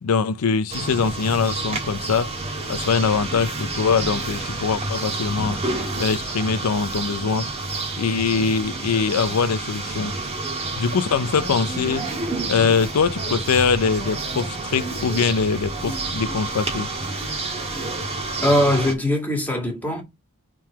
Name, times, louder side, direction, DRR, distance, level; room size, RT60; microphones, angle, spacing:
voice 1, 0.0-2.3 2.7-5.6 6.0-7.5 8.0-10.1 10.8-12.1 12.4-16.9, left 5 dB, 90° left, 0.5 m, -22 dB
sound 1, 0.7-18.9, right 2 dB, 30° right, 1.5 m, -29 dB
voice 2, 18.4-20.0, left 1 dB, 10° left, 1.9 m, -21 dB
4.7 x 3.8 x 5.6 m
head